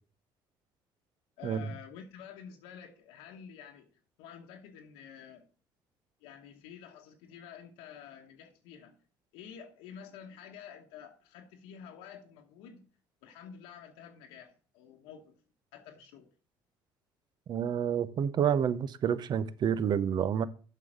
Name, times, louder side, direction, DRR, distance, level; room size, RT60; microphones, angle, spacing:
voice 1, 1.4-3.9 4.2-5.5 6.2-8.9 9.3-12.9 13.2-15.4 15.7-16.3, left 8 dB, 90° left, 1.1 m, -49 dB
voice 2, 17.5-20.5, right 8 dB, 50° right, 0.7 m, -29 dB
7.5 x 5.6 x 6.3 m
supercardioid pair, 85°, 9 cm